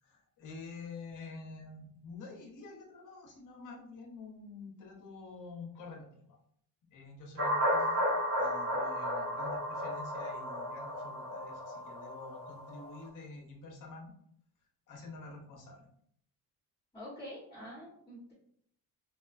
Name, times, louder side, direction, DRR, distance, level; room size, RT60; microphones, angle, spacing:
voice 1, 0.0-6.1 6.9-8.0 8.4-14.1 14.9-15.8, left 3 dB, 50° left, 1 dB, 1.0 m, -48 dB
sound 1, 7.4-13.0, equal, 35° right, 1.0 m, -33 dB
voice 2, 16.9-18.3, equal, 10° left, -7 dB, 1.2 m, -46 dB
3.5 x 2.4 x 2.5 m, 0.66 s
cardioid pair, 115°, 39 cm